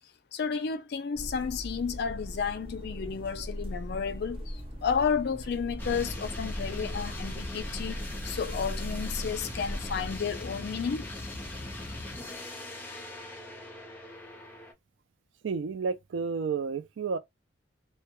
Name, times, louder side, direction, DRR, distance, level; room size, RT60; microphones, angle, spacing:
voice 1, 0.3-11.1, left 6 dB, 60° left, 0.4 m, -32 dB
sound 1, 1.1-10.2, equal, 30° right, 0.6 m, -39 dB
sound 2, 5.8-14.7, left 1 dB, 10° left, 0.7 m, -40 dB
voice 2, 15.4-17.2, right 5 dB, 80° right, 0.4 m, -31 dB
2.2 x 2.2 x 2.9 m
head